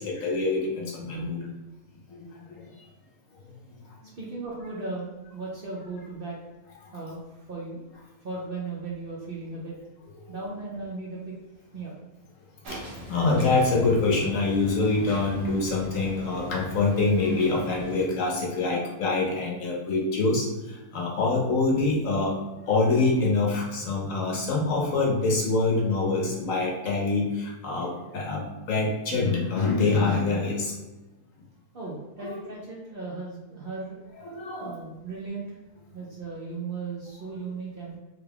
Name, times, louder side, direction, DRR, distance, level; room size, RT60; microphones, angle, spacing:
voice 1, 0.0-1.4 2.2-2.7 3.4-3.5 12.7-12.8 13.1-22.4 22.7-30.7 32.2-32.3 34.2-34.8, left 3 dB, 65° left, -2 dB, 1.0 m, -25 dB
voice 2, 4.2-6.4 6.9-7.8 8.2-9.7 10.3-11.3 11.7-11.9 31.7-34.0 34.6-35.6 35.9-37.9, right 3 dB, 55° right, -4 dB, 0.6 m, -36 dB
sound 1, 12.6-18.1, right 1 dB, 90° right, 1.4 m, -41 dB
3.4 x 2.3 x 3.4 m, 1.1 s
omnidirectional pair, 1.7 m